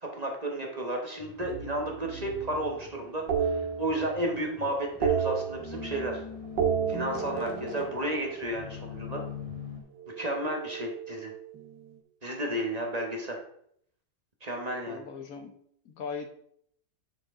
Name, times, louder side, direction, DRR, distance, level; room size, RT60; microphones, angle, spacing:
voice 1, 0.0-6.2 6.9-9.2 10.2-11.3 12.2-13.4 14.4-15.0, right 1 dB, 25° right, 0 dB, 1.2 m, -32 dB
sound 1, 1.2-9.8, left 6 dB, 20° left, 1.1 m, -44 dB
sound 2, 1.4-2.7 3.3-4.4 4.7-6.2 6.4-8.8 10.0-11.7, right 7 dB, 80° right, 1.9 m, -32 dB
voice 2, 14.9-15.6 15.8-16.3, left 5 dB, 60° left, 7 dB, 1.3 m, -39 dB
9.9 x 4.8 x 3.7 m, 0.67 s
omnidirectional pair, 1.9 m